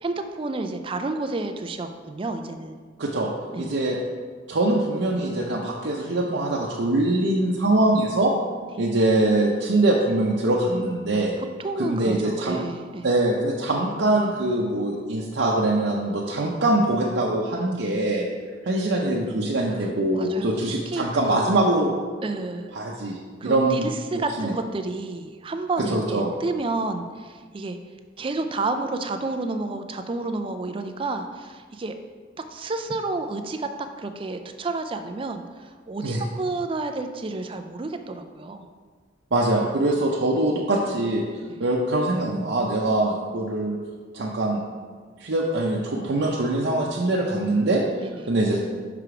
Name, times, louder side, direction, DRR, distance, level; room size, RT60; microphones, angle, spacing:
voice 1, 0.0-2.8 3.5-3.7 11.4-13.1 19.8-20.6 20.9-21.5 22.2-22.7 23.4-27.8 28.2-32.0 32.5-38.7 41.5-41.6 48.0-48.2, right 3 dB, 30° right, 7 dB, 0.4 m, -30 dB
voice 2, 3.0-3.3 3.6-4.0 4.5-8.3 8.8-11.3 11.8-12.6 13.0-18.2 18.6-21.9 22.7-23.9 24.4-24.5 25.9-26.3 36.0-36.2 39.3-41.2 41.6-43.8 44.1-44.6 45.2-47.8 48.3-48.6, right 2 dB, 85° right, -3 dB, 0.7 m, -23 dB
5.8 x 4.9 x 4.9 m, 1.5 s
head